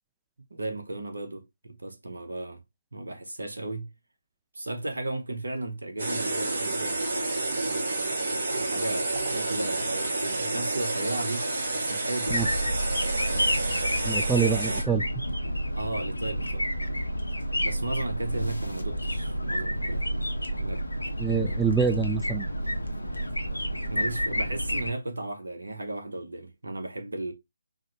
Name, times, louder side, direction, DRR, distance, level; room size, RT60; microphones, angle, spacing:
voice 1, 0.5-2.6 2.9-3.9 4.5-7.3 7.6-7.8 8.5-11.5 11.7-12.5 15.7-16.7 17.6-20.3 20.6-20.8 21.2-21.7 23.9-27.3, right 2 dB, 70° right, 0.9 m, -35 dB
sound 1, 6.0-14.8, right 2 dB, 50° right, 1.2 m, -29 dB
sound 2, 12.3-24.9, equal, 75° left, 0.8 m, -30 dB
voice 2, 14.0-15.0 21.2-22.5, right 6 dB, 5° right, 0.3 m, -25 dB
4.8 x 2.2 x 2.9 m
figure-of-eight pair, 145°, 0 cm